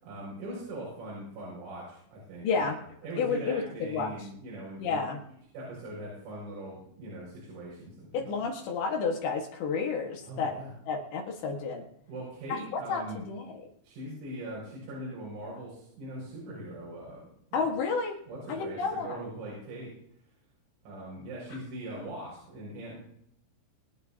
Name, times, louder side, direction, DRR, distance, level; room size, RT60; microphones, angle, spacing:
voice 1, 0.0-5.1 5.5-8.3 10.2-10.7 12.1-13.2 13.8-17.7 18.3-19.9 20.9-23.0, right 1 dB, 70° right, -6 dB, 8.6 m, -41 dB
voice 2, 2.4-2.8 3.2-3.6 3.9-4.1 4.8-5.2 8.1-10.5 10.9-11.9 12.5-13.7 17.5-18.2 18.5-19.2, left 5 dB, 65° left, 2 dB, 3.6 m, -31 dB
26.0 x 10.5 x 2.9 m, 0.70 s
omnidirectional pair, 5.9 m